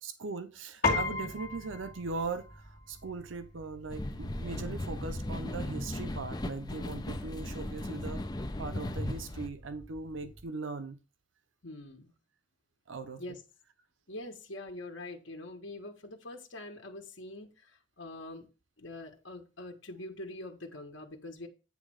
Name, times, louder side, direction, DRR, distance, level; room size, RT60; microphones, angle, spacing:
voice 1, 0.0-8.2 8.6-11.0 12.9-13.4, right 3 dB, 85° right, 0.7 m, -39 dB
Piano, 0.8-10.4, left 3 dB, 50° left, 2.3 m, -39 dB
sound 1, 3.9-9.5, left 1 dB, 20° left, 0.6 m, -37 dB
voice 2, 11.6-12.1 13.2-13.4 14.1-18.5 18.8-21.5, left 1 dB, 80° left, 1.4 m, -44 dB
9.3 x 3.2 x 6.3 m
head